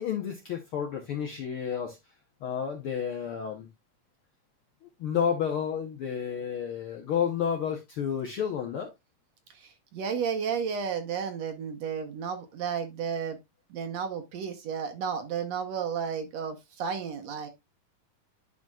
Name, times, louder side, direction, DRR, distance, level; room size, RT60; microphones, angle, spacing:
voice 1, 0.0-2.0 2.4-3.7 4.8-8.9, left 8 dB, 70° left, 1.3 m, -31 dB
voice 2, 9.5-13.4 13.7-17.5, right 7 dB, 65° right, 1.9 m, -32 dB
10.5 x 5.0 x 2.3 m
omnidirectional pair, 3.6 m